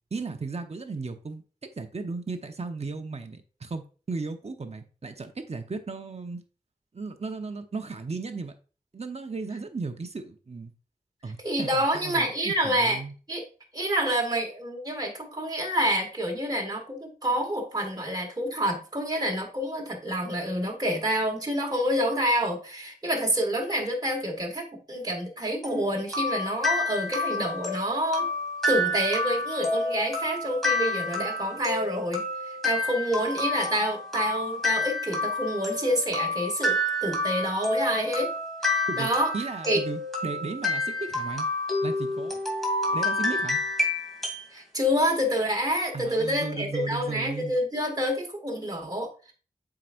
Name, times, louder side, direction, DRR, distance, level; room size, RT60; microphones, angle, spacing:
voice 1, 0.1-6.4 6.9-8.5 8.9-10.7 11.2-13.1 38.9-41.5 41.8-42.4 42.9-43.6 45.9-47.5, right 4 dB, 45° right, 6 dB, 0.9 m, -35 dB
voice 2, 11.4-13.0 13.3-13.4 13.7-28.3 28.7-32.2 32.6-38.3 38.7-39.3 39.7-39.8 44.5-49.3, equal, 25° right, 1 dB, 1.8 m, -28 dB
sound 1, 25.6-44.5, left 2 dB, ahead, 2.3 m, -29 dB
7.5 x 4.9 x 2.5 m, 0.36 s
wide cardioid pair, 65°, 15 cm